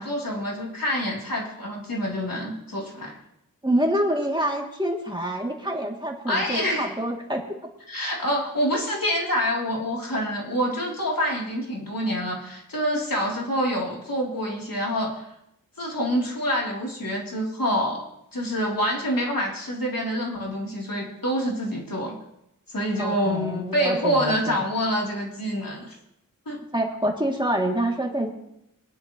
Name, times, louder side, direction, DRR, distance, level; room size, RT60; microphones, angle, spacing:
voice 1, 0.0-3.2 6.3-6.9 7.9-15.2 15.8-18.0 18.3-22.1 22.7-25.9 26.4-26.6, equal, 75° left, -3 dB, 3.4 m, -26 dB
voice 2, 3.6-7.6 23.0-24.6 26.7-28.3, right 1 dB, 15° right, -1 dB, 2.7 m, -26 dB
24.5 x 11.0 x 3.1 m, 0.81 s
wide cardioid pair, 50°, 34 cm